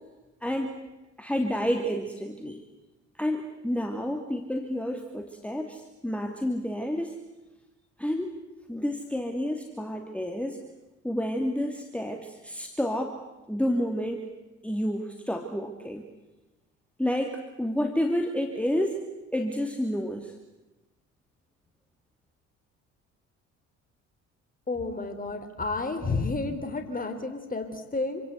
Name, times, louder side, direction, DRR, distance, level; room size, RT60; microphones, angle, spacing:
voice 1, 0.4-0.8 1.2-2.6 3.2-7.1 8.0-8.3 8.7-10.6 11.0-13.2 13.5-14.3 14.6-16.0 17.0-19.0 19.3-20.3, equal, 5° left, 4 dB, 2.6 m, -29 dB
voice 2, 24.7-28.2, left 3 dB, 20° left, 6 dB, 3.8 m, -31 dB
27.5 x 25.5 x 8.1 m, 1.1 s
figure-of-eight pair, 50°, 39 cm